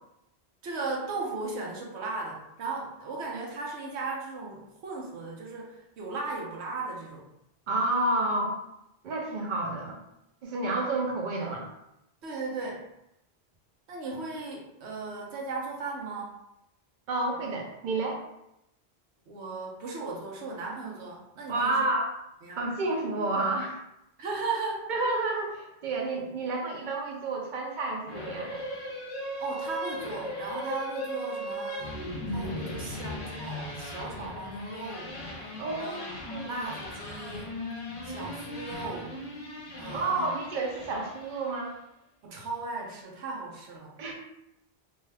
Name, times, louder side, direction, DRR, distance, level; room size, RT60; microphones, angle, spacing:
voice 1, 0.6-7.2 12.2-12.9 13.9-16.4 19.3-21.9 22.4-22.6 24.2-24.9 29.4-32.0 32.3-35.2 35.8-37.5 38.0-39.2 39.8-40.3 42.2-43.9, right 3 dB, 80° right, -1 dB, 1.0 m, -36 dB
voice 2, 7.7-8.6 9.0-10.0 10.4-11.7 17.1-18.2 21.5-22.1 22.6-23.8 24.9-28.6 35.6-36.0 36.3-36.7 39.9-41.7 44.0-44.1, right 2 dB, 55° right, 0 dB, 0.7 m, -30 dB
sound 1, 28.1-41.7, left 1 dB, 45° left, 0.6 m, -38 dB
2.7 x 2.3 x 3.2 m, 0.84 s
omnidirectional pair, 1.1 m